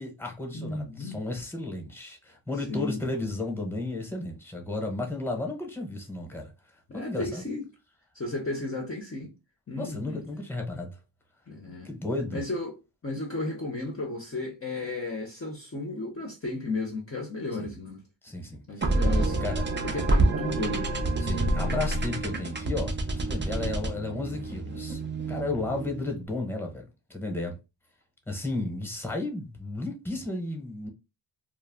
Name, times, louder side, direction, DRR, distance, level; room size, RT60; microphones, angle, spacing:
voice 1, 0.0-6.5 6.9-7.4 9.8-11.0 11.8-12.4 18.2-18.9 19.4-19.7 21.2-25.0 25.3-26.8 27.1-27.5 28.3-30.9, left 2 dB, 5° left, 0.9 m, -33 dB
voice 2, 0.5-1.2 2.7-3.0 6.9-7.7 8.1-9.3 9.7-10.2 11.5-11.9 12.3-12.8 13.0-18.0 18.7-19.4 19.8-20.9 21.5-21.8, left 2 dB, 30° left, 0.7 m, -34 dB
sound 1, 18.8-26.1, right 2 dB, 25° right, 0.5 m, -28 dB
2.3 x 2.1 x 3.4 m
cardioid pair, 75°, 48 cm